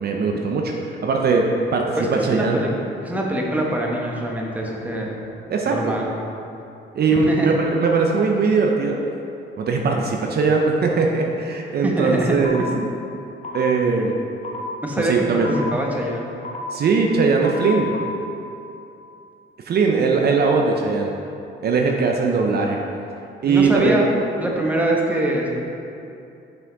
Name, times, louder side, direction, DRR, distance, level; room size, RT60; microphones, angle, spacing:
voice 1, 0.0-1.5 1.7-2.6 5.5-5.9 6.9-9.0 9.6-12.6 13.5-14.2 15.0-15.5 16.7-17.9 19.6-21.1 21.6-22.8 23.4-24.0, right 4 dB, 55° right, 1 dB, 0.6 m, -20 dB
voice 2, 2.0-2.7 3.0-5.1 5.6-6.1 7.1-7.5 11.8-12.3 12.6-12.8 14.8-15.1 15.5-16.3 23.4-24.1 24.4-25.6, right 1 dB, 5° right, -2 dB, 1.0 m, -24 dB
sound 1, 12.4-12.6 13.4-13.6 14.4-14.6 15.4-15.6 16.4-16.6 17.4-18.0, left 6 dB, 40° left, 1.0 m, -32 dB
6.0 x 5.7 x 3.9 m, 2.7 s
cardioid pair, 90°, 20 cm